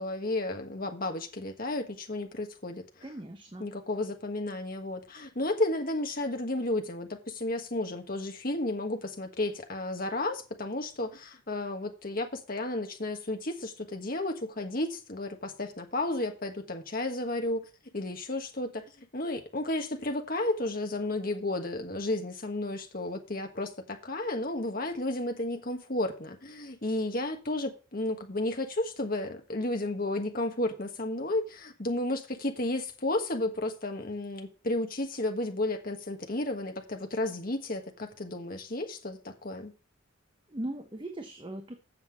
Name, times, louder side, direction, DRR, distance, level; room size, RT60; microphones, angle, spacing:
voice 1, 0.0-2.8 3.6-17.7 17.9-39.7, left 2 dB, 40° left, 1.4 m, -32 dB
voice 2, 3.0-3.7 40.5-41.8, right 1 dB, 20° right, 0.9 m, -39 dB
7.8 x 5.7 x 7.3 m
head